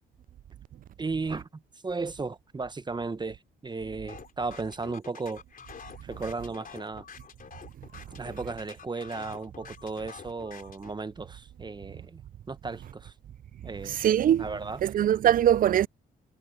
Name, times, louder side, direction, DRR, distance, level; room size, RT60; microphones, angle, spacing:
voice 1, 1.0-5.4 6.0-7.0 8.1-12.2 12.5-13.1 13.6-14.0 14.4-14.8, right 3 dB, 20° right, 0.9 m, -35 dB
sound 1, 4.1-10.9, left 6 dB, 45° left, 4.1 m, -47 dB
voice 2, 13.9-14.4 14.8-15.9, right 10 dB, 45° right, 0.4 m, -22 dB
cardioid pair, 90°, 20 cm